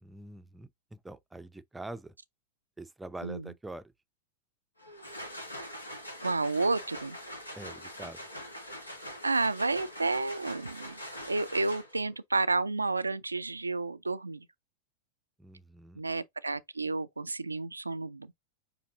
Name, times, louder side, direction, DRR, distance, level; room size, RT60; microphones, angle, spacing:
voice 1, 0.0-2.1 2.8-3.9 7.6-8.2 15.4-16.0, right 2 dB, 5° right, 0.5 m, -44 dB
sound 1, 4.8-12.1, equal, 85° left, 1.2 m, -43 dB
voice 2, 6.2-7.2 9.2-11.0 11.3-14.5 16.0-18.4, right 3 dB, 80° right, 0.3 m, -31 dB
6.9 x 2.7 x 2.8 m
figure-of-eight pair, 90°, 0 cm